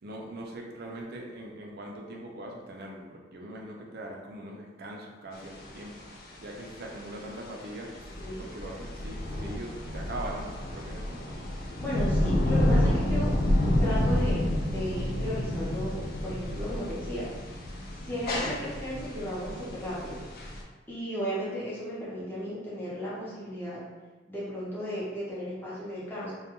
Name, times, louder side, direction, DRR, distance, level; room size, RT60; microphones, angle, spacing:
voice 1, 0.0-6.0 6.4-11.2, right 1 dB, 60° right, -1 dB, 0.4 m, -41 dB
sound 1, 5.3-20.6, left 1 dB, 55° left, 0.4 m, -29 dB
voice 2, 11.8-13.4 13.8-17.3 18.0-20.2 20.9-23.8 24.3-26.3, equal, 10° left, -9 dB, 0.6 m, -35 dB
2.2 x 2.2 x 2.9 m, 1.2 s
head